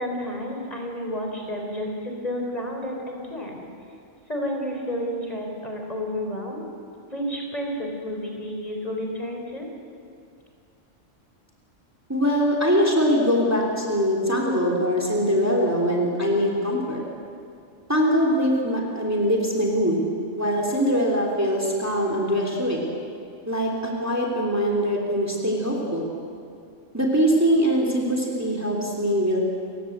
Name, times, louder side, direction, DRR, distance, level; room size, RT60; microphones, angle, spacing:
voice 1, 0.0-3.6 4.3-6.6 7.1-9.7, equal, 30° left, 1 dB, 3.8 m, -31 dB
voice 2, 12.1-17.0 17.9-20.0 20.4-22.9 23.5-26.1 26.9-29.4, equal, 10° right, -1 dB, 3.0 m, -22 dB
29.5 x 16.0 x 8.0 m, 2.4 s
omnidirectional pair, 1.3 m